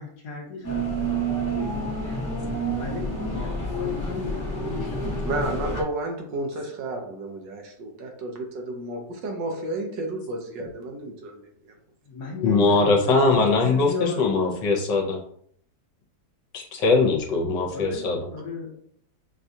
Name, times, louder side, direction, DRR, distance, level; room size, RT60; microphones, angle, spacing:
voice 1, 0.0-2.2 2.8-5.3 12.1-14.7 17.7-18.7, left 4 dB, 60° left, -2 dB, 1.5 m, -35 dB
sound 1, 0.6-5.8, right 2 dB, 25° left, 0.4 m, -28 dB
voice 2, 5.2-11.4, right 2 dB, 70° right, 2 dB, 1.4 m, -32 dB
voice 3, 12.4-15.2 16.5-18.2, left 3 dB, 75° left, 1 dB, 1.3 m, -21 dB
6.2 x 2.3 x 2.7 m, 0.64 s
omnidirectional pair, 2.1 m